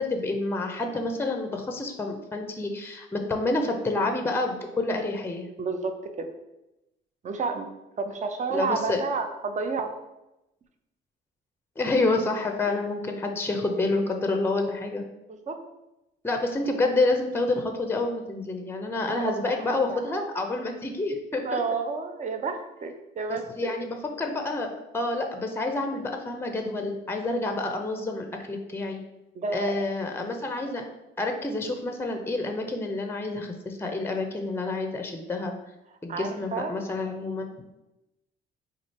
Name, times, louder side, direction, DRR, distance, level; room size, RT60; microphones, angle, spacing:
voice 1, 0.0-5.5 8.5-9.0 11.8-15.0 16.2-21.6 23.3-29.0 29.5-30.8 31.2-35.5 36.0-37.6, left 2 dB, 10° left, 4 dB, 0.5 m, -28 dB
voice 2, 5.6-6.3 7.2-7.7 8.0-9.9 15.3-15.6 18.9-20.1 21.4-23.7 29.3-29.8 36.1-36.7, right 4 dB, 35° right, 6 dB, 0.5 m, -31 dB
3.0 x 2.5 x 4.1 m, 0.94 s
supercardioid pair, 65°, 21 cm